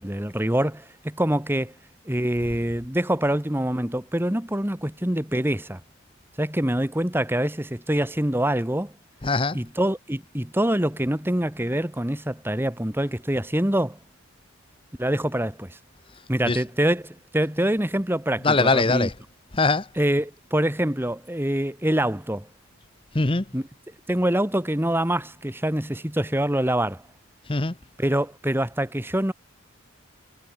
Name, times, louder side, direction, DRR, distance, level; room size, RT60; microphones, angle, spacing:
voice 1, 0.0-1.7 2.0-5.8 6.4-8.9 9.5-14.0 15.0-15.8 16.3-19.1 20.0-22.5 23.5-23.6 24.1-27.0 28.0-29.3, right 1 dB, 10° right, 1.5 m, -25 dB
voice 2, 9.2-9.6 16.4-16.6 18.4-19.1 19.5-19.9 23.1-23.5 27.5-27.8, left 3 dB, 25° left, 0.9 m, -22 dB
head